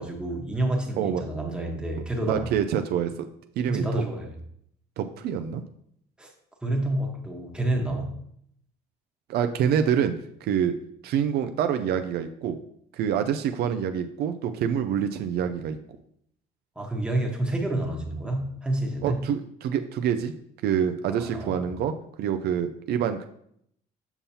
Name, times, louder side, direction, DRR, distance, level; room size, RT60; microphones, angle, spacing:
voice 1, 0.0-2.5 3.7-4.3 6.2-6.3 6.6-8.1 16.8-19.2 21.1-21.7, right 1 dB, 5° right, 1 dB, 1.2 m, -29 dB
voice 2, 2.3-3.3 3.6-3.8 5.0-5.6 9.3-10.2 10.4-10.8 11.0-12.6 12.9-15.8 19.0-20.3 20.6-23.3, right 8 dB, 70° right, 8 dB, 0.5 m, -26 dB
7.0 x 5.4 x 2.8 m, 0.70 s
cardioid pair, 110°, 17 cm